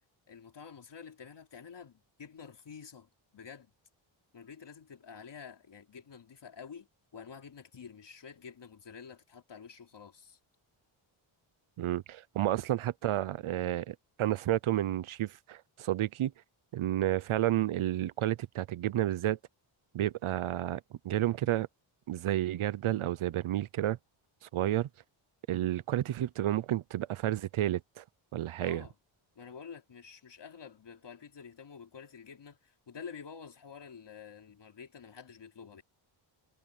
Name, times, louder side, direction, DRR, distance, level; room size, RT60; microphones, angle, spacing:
voice 1, 0.3-3.7 4.3-6.9 7.1-10.4 28.6-28.9 29.3-35.8, left 6 dB, 55° left, 3.4 m, -49 dB
voice 2, 11.8-16.3 16.7-19.4 19.9-21.7 22.1-24.0 24.4-24.9 25.5-28.0 28.3-28.8, right 13 dB, 75° right, 0.8 m, -31 dB
cardioid pair, 90°, 49 cm